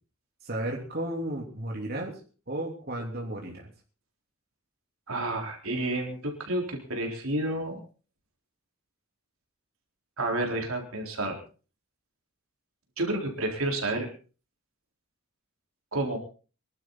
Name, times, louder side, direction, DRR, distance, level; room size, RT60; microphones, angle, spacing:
voice 1, 0.4-2.2 2.5-3.7, right 1 dB, 45° right, -1 dB, 3.2 m, -33 dB
voice 2, 5.1-7.8 10.2-11.4 13.0-14.1 15.9-16.2, right 1 dB, 80° right, 2 dB, 4.0 m, -30 dB
24.0 x 12.0 x 4.0 m, 0.37 s
head